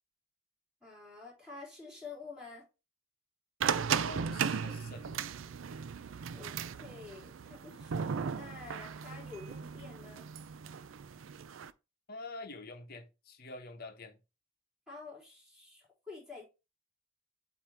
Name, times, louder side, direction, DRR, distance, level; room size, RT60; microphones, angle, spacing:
voice 1, 0.8-2.6 6.3-10.3 14.9-16.4, left 4 dB, 5° right, 3.6 m, -49 dB
sound 1, 3.6-11.7, right 7 dB, 85° right, 0.4 m, -36 dB
voice 2, 4.0-5.2 12.1-14.2, left 2 dB, 50° left, 1.0 m, -46 dB
8.2 x 2.9 x 4.5 m
head